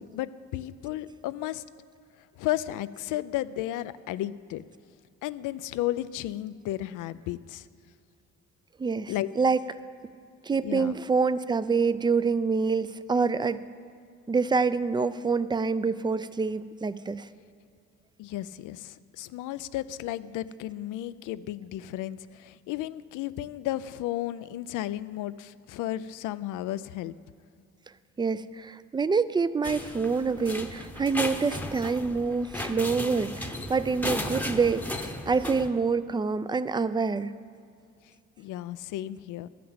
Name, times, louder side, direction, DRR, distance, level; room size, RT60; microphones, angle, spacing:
voice 1, 0.0-1.6 2.4-4.6 5.2-7.7 9.1-9.3 10.6-10.9 18.2-27.1 38.4-39.5, left 14 dB, 85° left, 15 dB, 0.5 m, -33 dB
voice 2, 8.8-9.6 10.4-13.6 14.3-17.3 28.2-37.3, right 4 dB, 15° right, 15 dB, 0.4 m, -26 dB
sound 1, 29.6-35.7, left 1 dB, 5° left, 0.8 m, -35 dB
12.5 x 5.9 x 8.6 m, 2.3 s
cardioid pair, 90°, 30 cm